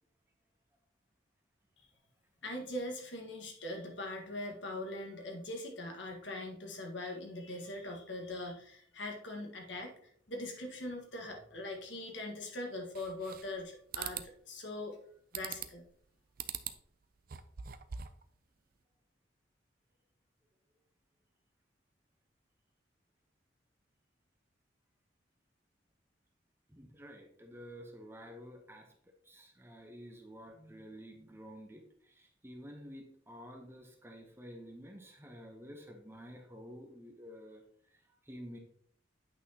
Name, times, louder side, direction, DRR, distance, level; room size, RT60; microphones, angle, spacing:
voice 1, 2.4-9.9 10.3-15.0 15.3-15.8, left 1 dB, 75° left, 2 dB, 1.5 m, -41 dB
sound 1, 13.0-13.6 13.9-14.3 15.3-15.9 16.4-16.8 17.2-18.2, right 9 dB, 50° right, 0.4 m, -42 dB
voice 2, 26.7-28.9 29.2-37.6 37.9-38.6, equal, 15° right, 3 dB, 0.9 m, -50 dB
8.6 x 5.8 x 2.9 m, 0.62 s
head